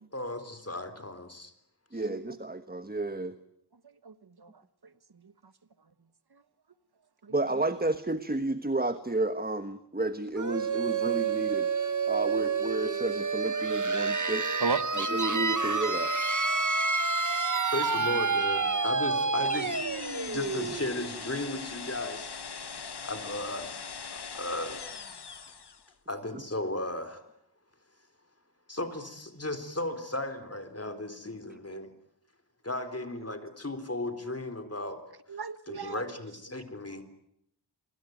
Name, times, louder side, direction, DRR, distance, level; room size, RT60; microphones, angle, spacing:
voice 1, 0.1-1.5 17.7-19.8 20.3-22.5 23.0-23.8 24.1-24.8 26.1-27.2 28.7-31.9 32.6-35.0 35.7-37.0, left 1 dB, 35° left, 9 dB, 3.9 m, -35 dB
voice 2, 1.9-3.4 7.3-14.6 14.9-16.1 26.3-26.4, right 2 dB, 20° right, 11 dB, 1.3 m, -32 dB
voice 3, 4.0-4.5 7.2-7.3 14.6-14.8 31.7-31.9 35.3-36.0, right 4 dB, 65° right, 13 dB, 1.3 m, -34 dB
sound 1, 10.4-21.9, right 4 dB, 45° right, 1.5 m, -29 dB
sound 2, 19.4-25.9, left 5 dB, 70° left, 1.2 m, -41 dB
27.5 x 22.5 x 9.4 m, 0.77 s
wide cardioid pair, 60°, 41 cm